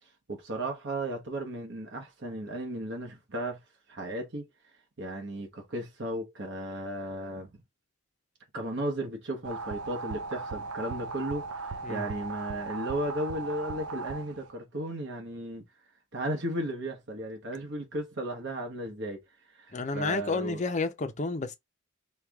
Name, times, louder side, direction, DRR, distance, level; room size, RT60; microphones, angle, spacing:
voice 1, 0.3-3.6 3.9-4.5 5.0-7.5 8.5-15.6 16.1-19.2 19.6-20.6, right 1 dB, 50° right, 1.0 m, -35 dB
sound 1, 9.4-14.5, right 3 dB, 85° right, 0.5 m, -37 dB
voice 2, 19.7-21.5, left 3 dB, 35° left, 0.5 m, -30 dB
4.6 x 2.3 x 3.4 m
head